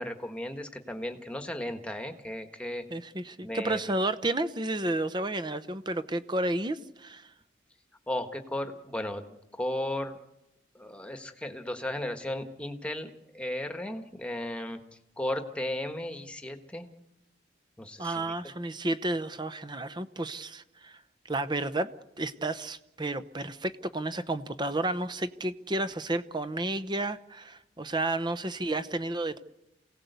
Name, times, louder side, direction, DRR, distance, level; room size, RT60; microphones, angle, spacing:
voice 1, 0.0-2.8 3.4-3.8 8.1-10.2 10.7-14.8 15.2-16.9 17.8-18.3, left 1 dB, 5° left, 7 dB, 1.5 m, -35 dB
voice 2, 2.9-7.3 18.0-21.0 21.2-21.9 22.2-29.4, right 2 dB, 25° right, 13 dB, 0.8 m, -31 dB
27.5 x 17.5 x 8.2 m, 0.91 s
head